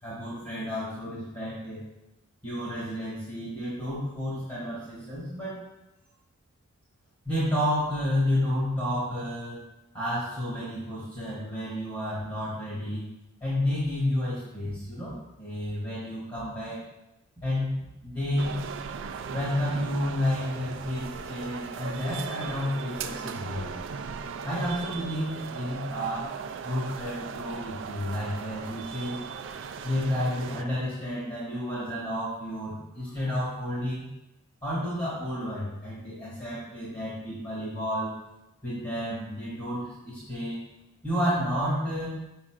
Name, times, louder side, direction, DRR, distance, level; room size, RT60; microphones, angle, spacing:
voice 1, 0.0-1.9 2.4-5.6 7.3-9.6 9.9-13.1 13.4-16.8 17.4-17.8 18.0-18.6 19.3-23.7 24.4-26.3 26.6-29.2 29.8-34.1 34.6-38.1 38.6-40.7 41.0-42.1, left 1 dB, 25° left, -9 dB, 2.1 m, -31 dB
sound 1, 18.4-30.6, right 6 dB, 65° right, 0.3 m, -38 dB
7.2 x 5.5 x 2.5 m, 0.94 s
head